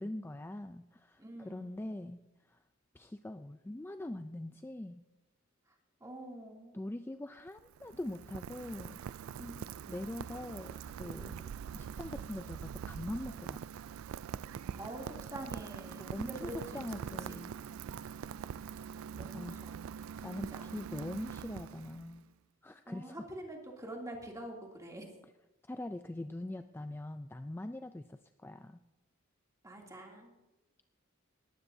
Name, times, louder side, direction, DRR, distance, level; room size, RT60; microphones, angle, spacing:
voice 1, 0.0-2.2 2.5-2.6 2.9-5.0 6.7-9.0 9.9-11.4 11.7-13.6 16.0-17.5 19.3-19.7 20.2-22.3 22.6-23.2 25.7-28.8, left 1 dB, 10° left, 9 dB, 0.3 m, -42 dB
voice 2, 1.2-1.9 5.7-5.8 6.0-6.8 9.4-9.9 14.5-16.9 17.3-17.5 19.2-19.9 20.2-20.8 22.9-25.1 29.6-30.3, right 1 dB, 15° right, -1 dB, 2.7 m, -46 dB
Rain, 7.4-22.2, right 7 dB, 90° right, 0.3 m, -44 dB
19.5 x 15.0 x 2.7 m, 1.0 s
head